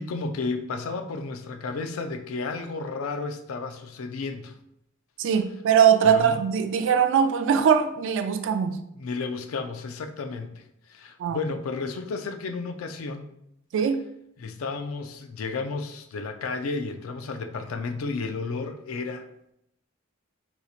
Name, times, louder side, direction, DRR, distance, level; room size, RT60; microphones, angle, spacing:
voice 1, 0.0-4.6 6.0-6.4 8.9-13.3 14.4-19.3, left 4 dB, 85° left, 7 dB, 0.4 m, -32 dB
voice 2, 5.2-8.8 11.2-11.4 13.7-14.1, right 7 dB, 65° right, 8 dB, 0.3 m, -21 dB
4.0 x 2.8 x 2.4 m, 0.77 s
head